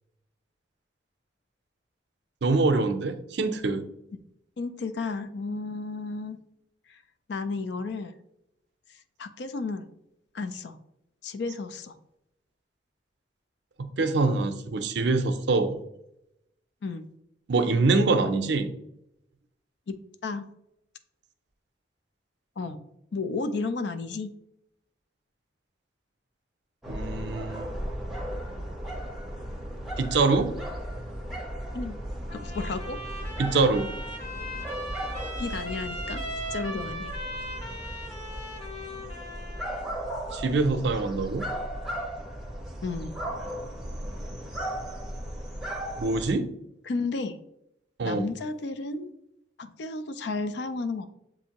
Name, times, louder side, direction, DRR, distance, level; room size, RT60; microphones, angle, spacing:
voice 1, 2.4-3.8 14.0-15.8 17.5-18.7 26.9-27.7 30.0-30.5 33.4-33.9 40.3-41.5 46.0-46.5 48.0-48.3, right 3 dB, 70° right, 8 dB, 0.5 m, -24 dB
voice 2, 4.6-6.4 6.9-7.0 7.3-8.1 9.2-9.9 10.3-10.8 11.2-11.9 16.8-17.1 19.9-20.0 20.2-20.5 22.6-22.8 23.1-24.3 31.7-32.0 32.3-33.0 35.4-36.3 36.5-37.2 42.8-43.1 46.9-47.3 48.0-49.1 49.6-51.1, left 3 dB, 70° left, 10 dB, 0.4 m, -32 dB
sound 1, 26.8-46.3, equal, ahead, 0.6 m, -36 dB
Trumpet, 32.3-39.9, equal, 30° left, 0.9 m, -38 dB
7.1 x 2.6 x 2.9 m, 0.82 s
head